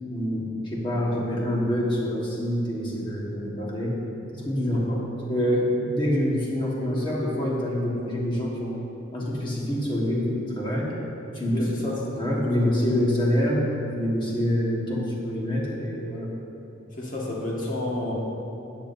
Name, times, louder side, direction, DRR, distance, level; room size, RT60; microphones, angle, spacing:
voice 1, 0.1-4.0 4.3-4.8 5.3-8.8 9.1-10.9 11.3-11.7 12.1-16.3, equal, 25° left, -4 dB, 1.5 m, -26 dB
voice 2, 4.7-5.0 11.5-12.0 16.9-18.1, left 2 dB, 40° left, -4 dB, 1.7 m, -31 dB
13.0 x 9.5 x 2.7 m, 2.9 s
head